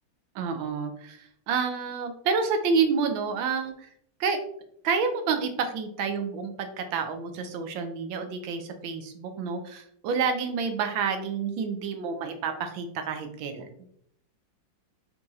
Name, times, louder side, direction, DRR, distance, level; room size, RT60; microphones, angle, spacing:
voice 1, 0.3-3.9 4.2-4.4 4.8-13.7, right 5 dB, 85° right, 6 dB, 1.4 m, -29 dB
4.4 x 3.5 x 2.7 m, 0.70 s
omnidirectional pair, 2.1 m